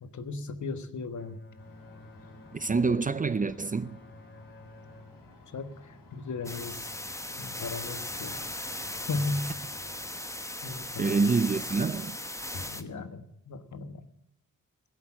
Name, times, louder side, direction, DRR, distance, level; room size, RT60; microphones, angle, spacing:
voice 1, 0.0-1.4 5.5-6.9 7.4-8.4 9.1-9.5 10.6-11.3 12.5-14.1, left 3 dB, 60° left, 1.3 m, -36 dB
Bowed string instrument, 1.2-6.6, left 2 dB, 35° left, 2.2 m, -53 dB
sound 1, 1.6-10.2, left 2 dB, 90° left, 4.0 m, -54 dB
voice 2, 2.5-4.0 8.3-8.4 11.0-12.2, right 4 dB, 25° right, 0.5 m, -27 dB
sound 2, 6.4-12.8, left 1 dB, 10° left, 1.1 m, -38 dB
16.5 x 8.0 x 7.5 m
cardioid pair, 65°, 33 cm